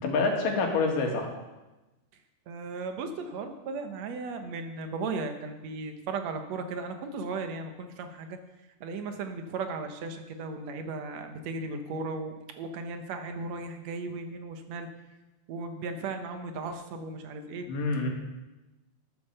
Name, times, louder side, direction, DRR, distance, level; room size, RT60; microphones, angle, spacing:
voice 1, 0.0-1.3 17.7-18.1, left 3 dB, 90° left, 1 dB, 3.5 m, -27 dB
voice 2, 2.5-8.4 8.8-14.9 15.5-17.7, right 3 dB, 65° right, 6 dB, 2.0 m, -36 dB
12.0 x 8.5 x 6.6 m, 1.1 s
omnidirectional pair, 3.7 m